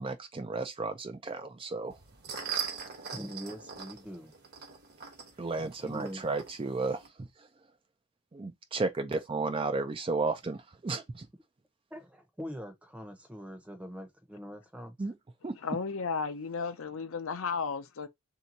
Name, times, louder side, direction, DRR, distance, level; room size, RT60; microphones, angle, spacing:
voice 1, 0.0-2.0 5.4-7.5 8.3-11.3 15.0-15.1 15.4-15.6, right 3 dB, 25° right, 0.4 m, -33 dB
sound 1, 1.9-7.1, right 7 dB, 45° right, 1.1 m, -41 dB
voice 2, 3.1-4.3 5.8-6.2 11.9-14.9, equal, 5° right, 0.8 m, -43 dB
voice 3, 15.6-18.1, left 5 dB, 65° left, 0.6 m, -34 dB
3.4 x 2.8 x 4.0 m
head